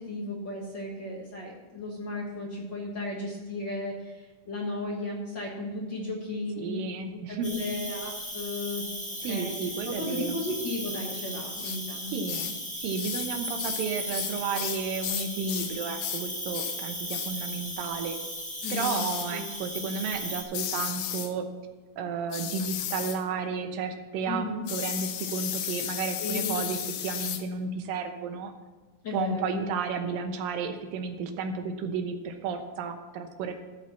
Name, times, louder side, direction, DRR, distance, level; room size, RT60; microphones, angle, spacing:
voice 1, 0.0-6.8 7.1-8.9 9.3-9.5 9.8-12.3 18.6-19.0 19.3-19.4 24.3-24.6 26.2-26.6 29.0-29.6, left 1 dB, 60° left, -2 dB, 1.1 m, -35 dB
voice 2, 6.6-7.6 9.2-10.4 12.1-18.2 18.7-21.5 22.0-28.5 29.1-33.5, right 5 dB, 75° right, 6 dB, 2.6 m, -32 dB
Cricket, 7.4-20.4, equal, 5° left, 0.7 m, -36 dB
sound 1, 11.6-11.8 12.3-12.6 13.0-13.3 13.6-15.7 16.0-16.3 16.5-16.8 17.1-17.3 18.6-19.3 20.5-21.3 22.3-23.2 24.7-27.4, left 10 dB, 85° left, 1.6 m, -34 dB
13.5 x 4.9 x 7.2 m, 1.3 s
omnidirectional pair, 4.2 m